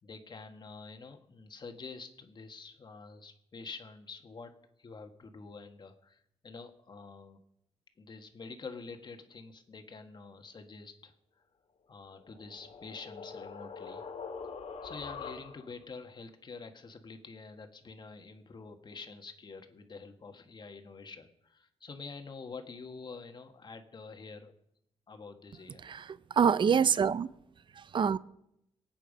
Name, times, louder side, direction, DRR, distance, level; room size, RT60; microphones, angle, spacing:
voice 1, 0.0-4.5 4.8-7.4 8.0-11.1 11.9-14.0 14.8-24.5 25.1-25.9, left 4 dB, 40° left, 1.8 m, -47 dB
sound 1, 12.1-15.8, left 5 dB, 70° left, 2.1 m, -44 dB
voice 2, 25.8-27.3 27.7-28.2, right 7 dB, 45° right, 0.6 m, -26 dB
23.0 x 9.2 x 5.2 m
cardioid pair, 100°, 11 cm